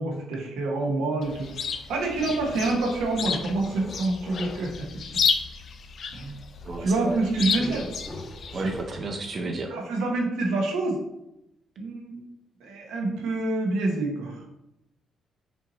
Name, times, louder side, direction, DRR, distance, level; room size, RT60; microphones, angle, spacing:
voice 1, 0.0-4.9 6.1-6.4 6.8-7.9 9.7-11.0 11.8-12.2 12.6-14.4, right 2 dB, 90° right, -1 dB, 1.0 m, -27 dB
Chirp tweet, 1.2-8.8, left 6 dB, 55° left, 0.4 m, -32 dB
sound 1, 2.1-4.8 7.4-9.7, left 1 dB, 20° left, 0.8 m, -42 dB
voice 2, 6.6-7.2 8.5-9.7, right 2 dB, 45° right, 2 dB, 0.5 m, -32 dB
5.8 x 2.9 x 2.8 m, 0.87 s
cardioid pair, 90°, 0 cm